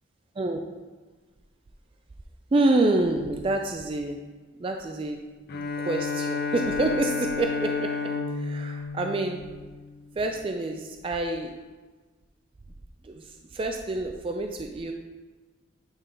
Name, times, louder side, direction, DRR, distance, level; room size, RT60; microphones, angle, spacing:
voice 1, 2.5-4.2 4.6-5.2 5.8-7.9 8.3-9.4 10.2-11.5 13.0-14.9, right 2 dB, 30° right, 4 dB, 0.3 m, -27 dB
Bowed string instrument, 5.5-10.1, left 4 dB, 50° left, 0.5 m, -31 dB
8.7 x 3.2 x 3.8 m, 1.3 s
head